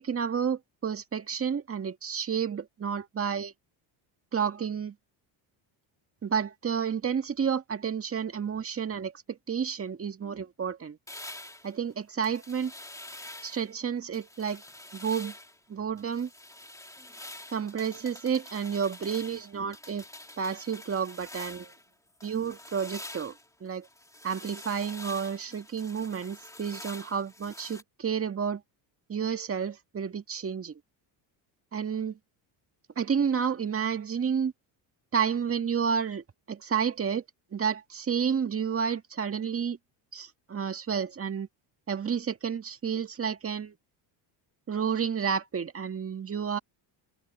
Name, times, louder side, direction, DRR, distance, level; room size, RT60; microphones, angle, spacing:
voice 1, 0.0-3.5 4.3-4.9 6.2-11.0 11.6-12.7 13.4-14.6 14.9-15.3 15.7-16.3 17.5-20.1 20.4-21.7 22.2-23.3 23.6-23.9 24.2-28.6 29.1-30.7 31.7-32.2 33.0-34.5 35.1-37.2 37.5-39.8 40.1-41.5 41.9-43.7 44.7-46.6, right 7 dB, 30° right, 1.8 m, -30 dB
sound 1, 11.1-13.7 14.1-15.6 16.0-21.9 22.2-27.8, left 1 dB, 5° left, 2.5 m, -46 dB
cardioid pair, 100°, 48 cm